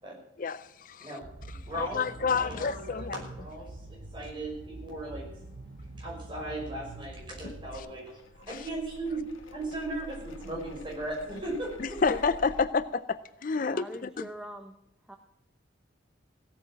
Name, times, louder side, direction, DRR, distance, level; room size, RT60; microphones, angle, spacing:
voice 1, 0.4-1.1 1.7-3.2 7.7-7.8 8.5-8.6 12.0-13.8, left 5 dB, 40° left, 0.4 m, -29 dB
sound 1, 1.2-7.8, right 2 dB, 65° right, 1.1 m, -45 dB
voice 2, 1.7-5.3 6.0-12.0, right 2 dB, 25° right, 5.9 m, -37 dB
sound 2, 2.8-12.7, left 2 dB, 85° left, 1.3 m, -51 dB
voice 3, 13.7-14.8 15.1-15.2, equal, 5° right, 0.8 m, -43 dB
17.0 x 8.8 x 7.4 m
head